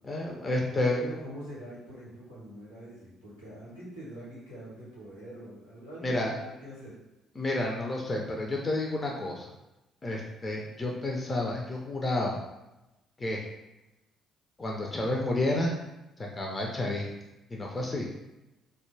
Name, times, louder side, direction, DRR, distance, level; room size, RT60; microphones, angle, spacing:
voice 1, 0.0-1.0 6.0-6.3 7.4-9.5 10.0-12.4 13.2-13.4 14.6-15.7 16.3-17.1 17.5-18.1, left 2 dB, 25° left, -1 dB, 0.4 m, -30 dB
voice 2, 0.7-6.9, equal, 85° left, -8 dB, 1.0 m, -44 dB
2.2 x 2.2 x 3.1 m, 0.97 s
figure-of-eight pair, 45°, 0 cm